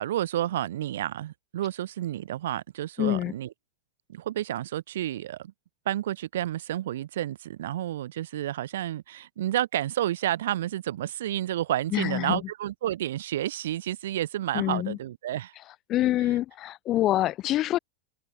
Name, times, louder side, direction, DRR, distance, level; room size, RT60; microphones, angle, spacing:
voice 1, 0.0-3.5 4.1-5.5 5.8-15.5, right 13 dB, 65° right, 1.2 m, -30 dB
voice 2, 3.0-3.3 11.9-12.4 14.5-15.0 15.9-17.8, left 14 dB, 35° left, 1.3 m, -26 dB
open air
figure-of-eight pair, 95°, 0 cm